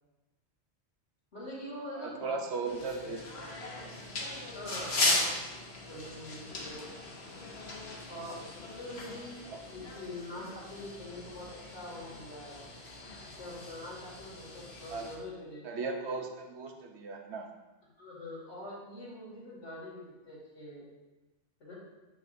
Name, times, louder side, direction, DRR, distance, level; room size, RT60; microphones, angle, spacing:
voice 1, 1.3-2.4 2.7-3.2 4.5-5.3 5.6-6.9 8.1-12.7 13.3-15.7 18.0-20.9 21.6-21.7, left 1 dB, 90° left, -6 dB, 2.5 m, -44 dB
voice 2, 2.0-3.5 4.9-5.2 9.5-9.6 14.9-15.1 15.6-17.5, right 4 dB, 75° right, 3 dB, 1.0 m, -37 dB
sound 1, 2.7-15.2, left 2 dB, 65° left, 1.3 m, -38 dB
7.5 x 5.8 x 2.6 m, 1.1 s
omnidirectional pair, 1.1 m